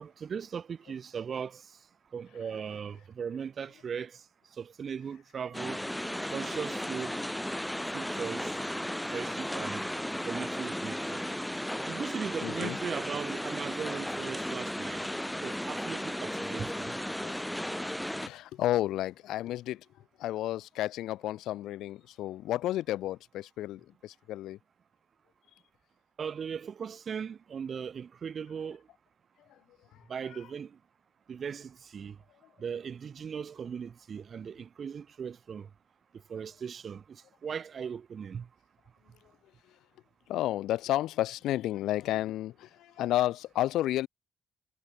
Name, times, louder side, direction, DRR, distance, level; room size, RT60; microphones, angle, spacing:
voice 1, 0.0-1.6 2.1-4.2 4.6-5.8 6.3-7.2 7.9-8.5 9.1-9.8 10.3-11.2 11.9-15.0 15.4-16.9 26.2-28.8 30.1-30.8 31.3-32.2 32.6-35.7 36.3-38.5, right 7 dB, 50° right, 2.4 m, -38 dB
sound 1, 5.5-18.3, left 1 dB, 5° left, 4.1 m, -35 dB
voice 2, 12.4-12.8 17.2-17.3 17.6-19.9 20.2-24.6 40.3-44.1, left 14 dB, 85° left, 1.8 m, -32 dB
cardioid pair, 90°, 0 cm